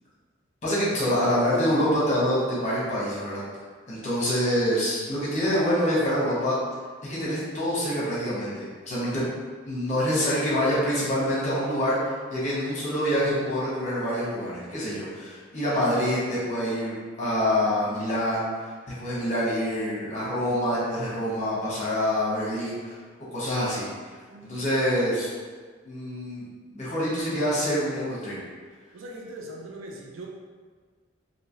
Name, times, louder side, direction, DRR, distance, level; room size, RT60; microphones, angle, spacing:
voice 1, 0.6-3.4 3.9-6.6 7.0-9.3 9.7-23.0 23.3-23.9 24.4-25.3 25.8-28.4, equal, 35° left, -7 dB, 1.0 m, -26 dB
voice 2, 24.2-24.6 28.9-30.3, right 1 dB, 85° right, -1 dB, 0.5 m, -41 dB
3.1 x 2.8 x 2.7 m, 1.5 s
head